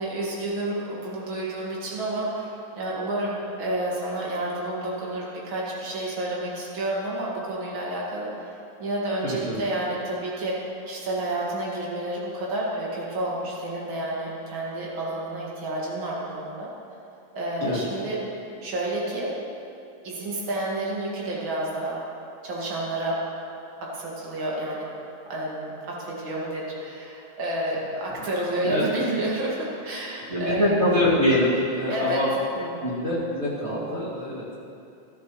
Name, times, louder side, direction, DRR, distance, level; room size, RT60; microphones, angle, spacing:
voice 1, 0.0-8.5 8.8-16.7 17.3-18.2 18.6-19.3 20.0-22.0 22.4-23.1 23.8-24.8 25.3-30.7 31.9-32.2 32.5-32.7, right 1 dB, 60° right, -5 dB, 1.2 m, -30 dB
voice 2, 9.2-9.6 17.6-17.8 28.6-28.8 30.3-32.4 32.8-34.5, left 1 dB, 30° right, -9 dB, 1.2 m, -24 dB
18.0 x 13.0 x 3.2 m, 2.6 s
omnidirectional pair, 5.7 m